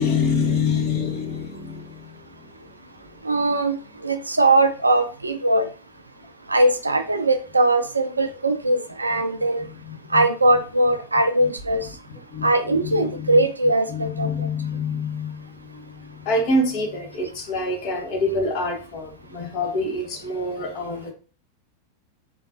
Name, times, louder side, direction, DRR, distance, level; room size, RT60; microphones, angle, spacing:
voice 1, 0.0-2.0 9.9-10.3 12.1-13.4 13.9-21.1, left 3 dB, 40° left, 3 dB, 0.9 m, -26 dB
voice 2, 3.2-3.7 4.0-5.7 6.5-9.6 10.1-11.9 12.4-14.3, right 2 dB, 80° right, 7 dB, 0.4 m, -20 dB
3.7 x 2.5 x 2.6 m, 0.35 s
figure-of-eight pair, 90°, 0 cm